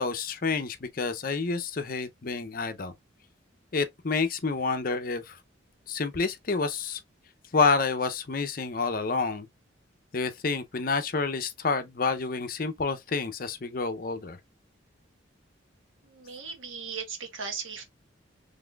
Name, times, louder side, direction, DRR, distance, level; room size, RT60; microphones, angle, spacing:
voice 1, 0.0-2.9 3.7-5.4 5.9-7.0 7.5-9.5 10.1-14.4, left 4 dB, 45° left, 0.6 m, -28 dB
voice 2, 16.0-17.8, right 5 dB, 90° right, 1.3 m, -37 dB
4.0 x 3.3 x 2.3 m
head